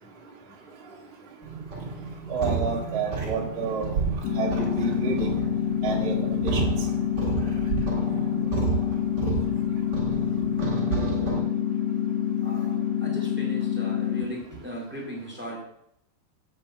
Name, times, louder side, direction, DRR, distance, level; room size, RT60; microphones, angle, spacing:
sound 1, 1.4-11.4, right 5 dB, 40° right, 1.6 m, -31 dB
voice 1, 2.3-3.9 4.3-5.3 5.8-6.6, right 4 dB, 80° right, -4 dB, 0.5 m, -29 dB
sound 2, 4.2-14.3, left 10 dB, 90° left, 2.8 m, -27 dB
voice 2, 10.2-10.5 12.4-15.6, equal, 10° right, -3 dB, 0.5 m, -38 dB
7.1 x 5.3 x 7.4 m, 0.76 s
omnidirectional pair, 4.6 m